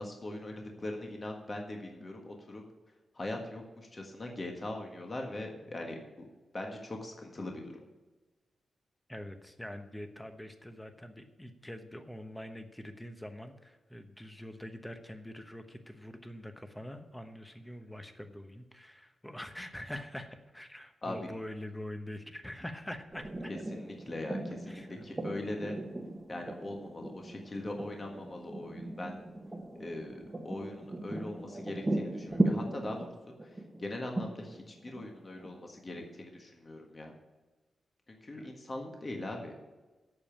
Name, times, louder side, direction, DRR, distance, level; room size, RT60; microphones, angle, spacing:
voice 1, 0.0-2.6 3.1-6.0 6.5-7.8 21.0-21.2 23.5-25.8 26.3-29.2 29.8-33.1 33.4-37.1 38.1-39.5, left 1 dB, 30° left, 1 dB, 1.5 m, -41 dB
voice 2, 9.1-23.5 24.7-25.0 38.3-38.5, left 1 dB, 5° left, 7 dB, 1.0 m, -44 dB
sound 1, 23.1-36.2, right 1 dB, 15° right, 1.2 m, -37 dB
8.5 x 7.0 x 8.6 m, 1.2 s
wide cardioid pair, 110°, 0 cm